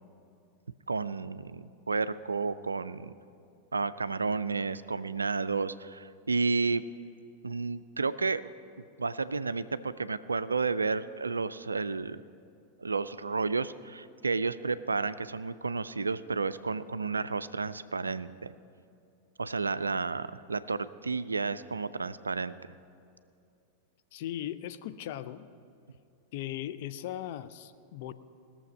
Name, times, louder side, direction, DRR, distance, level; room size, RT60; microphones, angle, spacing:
voice 1, 0.9-3.1 3.7-6.8 7.4-8.4 9.0-12.2 12.8-18.5 19.4-22.6, right 4 dB, 75° right, 15 dB, 0.3 m, -31 dB
voice 2, 24.1-25.5 26.3-28.1, left 12 dB, 50° left, 11 dB, 0.5 m, -38 dB
19.5 x 7.0 x 5.3 m, 2.5 s
figure-of-eight pair, 90°, 0 cm